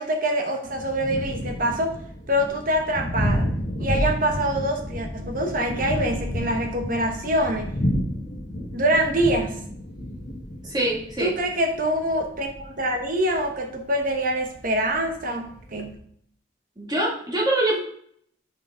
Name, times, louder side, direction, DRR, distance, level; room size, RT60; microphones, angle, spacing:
voice 1, 0.0-1.9 2.3-7.8 8.7-9.6 11.2-16.0, right 1 dB, 45° right, 3 dB, 1.0 m, -25 dB
Thunder, 0.6-15.9, equal, 35° left, 1.6 m, -31 dB
voice 2, 10.6-11.4 16.8-17.8, right 1 dB, 20° right, -4 dB, 2.2 m, -24 dB
8.5 x 5.5 x 3.8 m, 0.64 s
head